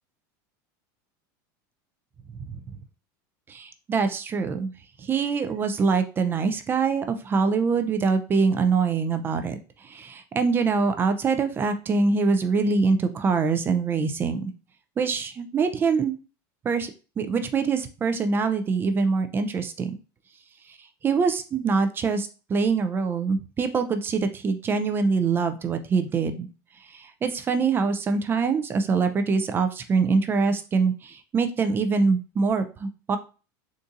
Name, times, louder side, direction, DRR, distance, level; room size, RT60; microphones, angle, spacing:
voice 1, 3.5-4.7 5.0-14.4 15.0-16.1 16.6-16.9 17.2-19.9 20.7-20.8 21.0-26.5 26.9-33.2, right 4 dB, 20° right, 9 dB, 0.3 m, -24 dB
3.8 x 2.6 x 2.4 m, 0.33 s
supercardioid pair, 135°, 11 cm